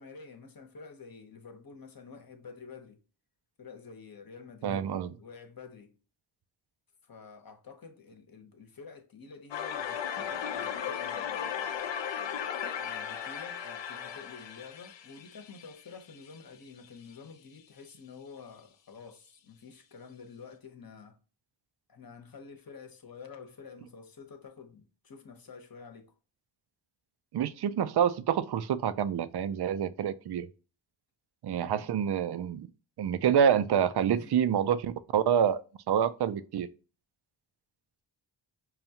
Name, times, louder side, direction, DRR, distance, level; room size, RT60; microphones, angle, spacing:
voice 1, 0.0-3.0 3.6-4.8 5.2-5.9 7.0-11.6 12.8-21.2 21.9-26.1 31.5-31.9 34.1-34.4, left 5 dB, 45° left, 1.0 m, -49 dB
voice 2, 4.6-5.1 27.3-30.5 31.4-32.7 33.0-35.6 35.9-36.7, right 8 dB, 55° right, 0.5 m, -27 dB
sound 1, 9.5-16.4, left 8 dB, 65° left, 0.6 m, -36 dB
5.5 x 2.3 x 2.8 m
cardioid pair, 55°, 48 cm